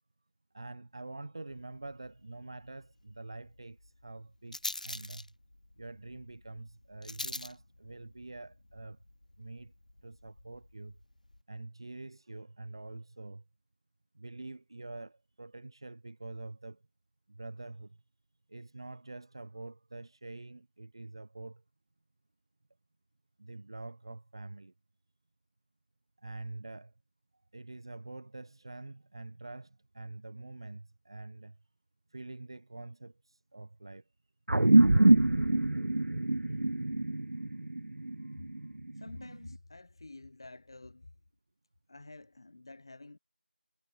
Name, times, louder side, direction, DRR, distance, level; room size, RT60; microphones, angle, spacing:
voice 1, 0.5-5.3 5.8-9.0 9.4-9.7 10.0-11.0 11.5-13.4 14.1-16.8 17.3-18.0 18.5-21.6 23.4-24.7 26.2-26.9 27.5-31.6 32.1-34.1 38.2-38.7, right 2 dB, 25° right, 6.5 m, -46 dB
Rattle, 1.5-11.4, left 1 dB, 45° left, 1.8 m, -46 dB
sound 1, 34.5-39.2, right 2 dB, 85° right, 0.5 m, -25 dB
voice 2, 38.9-41.1 41.9-43.2, left 2 dB, 25° left, 4.3 m, -49 dB
figure-of-eight pair, 175°, 6 cm